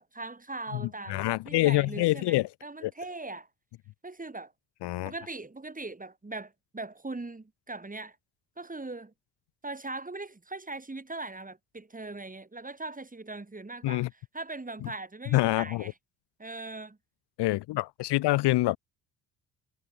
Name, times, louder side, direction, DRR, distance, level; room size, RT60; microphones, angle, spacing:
voice 1, 0.0-3.5 4.0-4.5 5.0-8.2 8.6-9.1 9.6-15.9 16.4-17.0, right 2 dB, 15° right, 6.7 m, -40 dB
voice 2, 1.1-2.5 2.8-2.9 4.8-5.1 13.8-14.1 15.3-15.8 17.4-18.8, left 18 dB, 60° left, 1.5 m, -26 dB
figure-of-eight pair, 50°, 46 cm